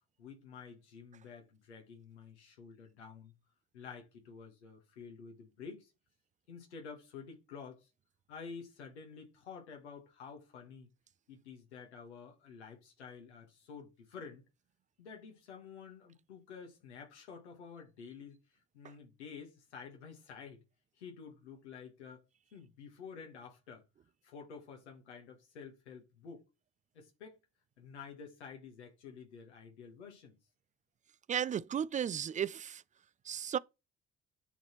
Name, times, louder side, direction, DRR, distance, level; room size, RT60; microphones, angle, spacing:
voice 1, 0.2-3.3 3.7-5.9 6.5-7.9 8.3-10.9 11.3-14.4 15.0-18.4 18.7-20.6 21.0-22.2 22.5-23.8 24.2-26.4 26.9-27.4 27.8-30.4, left 6 dB, 80° left, 1.4 m, -50 dB
voice 2, 31.3-32.8 33.3-33.6, right 9 dB, 25° right, 0.3 m, -34 dB
10.0 x 4.0 x 3.0 m
figure-of-eight pair, 45°, 33 cm